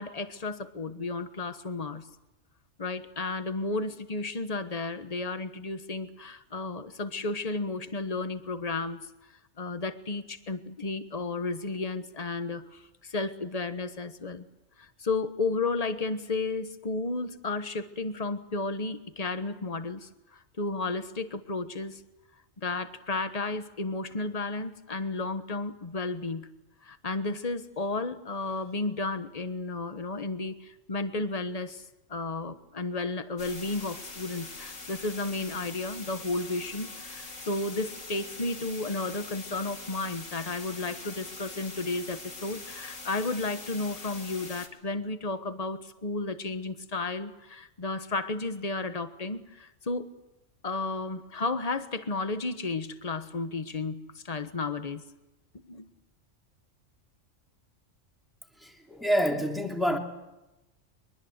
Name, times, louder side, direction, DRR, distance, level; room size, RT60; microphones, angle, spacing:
voice 1, 0.0-2.1 2.8-9.0 9.6-14.4 14.8-22.0 22.6-26.5 26.8-31.8 32.1-50.1 50.6-55.0 55.7-55.9, left 3 dB, 30° left, 10 dB, 1.4 m, -33 dB
sound 1, 33.4-44.7, left 3 dB, 75° left, 3.0 m, -43 dB
voice 2, 58.6-60.0, equal, ahead, 2 dB, 3.1 m, -27 dB
23.5 x 21.5 x 8.1 m, 0.97 s
omnidirectional pair, 1.3 m